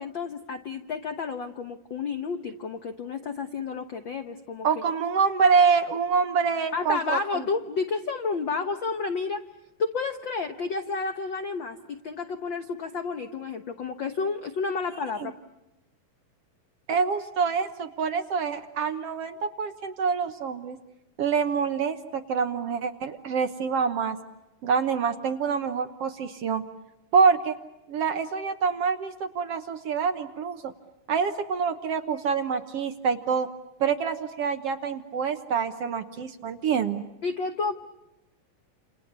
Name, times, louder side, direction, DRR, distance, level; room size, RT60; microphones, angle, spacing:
voice 1, 0.0-4.8 6.7-9.4 9.8-15.3 37.2-37.9, left 4 dB, 90° left, 8 dB, 1.0 m, -31 dB
voice 2, 4.6-7.5 15.2-15.3 16.9-20.8 21.2-24.2 24.6-26.6 27.1-27.6 27.9-30.7 31.1-33.5 33.8-37.0, right 6 dB, 60° right, 7 dB, 1.7 m, -26 dB
29.0 x 28.5 x 6.9 m, 0.96 s
omnidirectional pair, 3.9 m